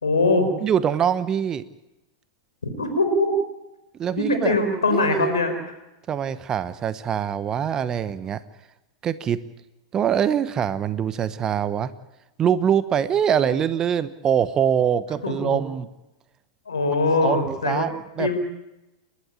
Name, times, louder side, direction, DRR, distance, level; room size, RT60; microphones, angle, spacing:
voice 1, 0.0-0.5 2.8-3.3 4.2-5.5 15.2-15.6 16.7-17.9 18.2-18.4, left 2 dB, 80° left, 8 dB, 4.5 m, -22 dB
voice 2, 0.6-1.6 4.0-4.5 4.9-5.4 6.1-8.4 9.0-9.4 9.9-11.9 12.4-15.9 17.2-18.4, right 8 dB, 25° right, 15 dB, 1.0 m, -24 dB
29.0 x 12.0 x 8.7 m, 0.96 s
figure-of-eight pair, 95°, 2 cm